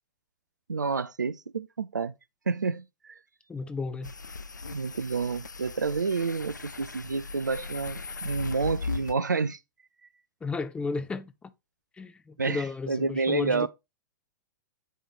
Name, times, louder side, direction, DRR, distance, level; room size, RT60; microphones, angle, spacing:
voice 1, 0.7-2.1 2.5-3.2 4.7-9.6 12.4-13.7, right 4 dB, 80° right, 0.4 m, -29 dB
voice 2, 3.5-4.1 10.4-11.5 11.9-13.7, left 4 dB, 10° left, 0.6 m, -33 dB
sound 1, 4.0-9.1, left 4 dB, 85° left, 0.4 m, -38 dB
9.2 x 3.1 x 4.1 m
figure-of-eight pair, 105°, 10 cm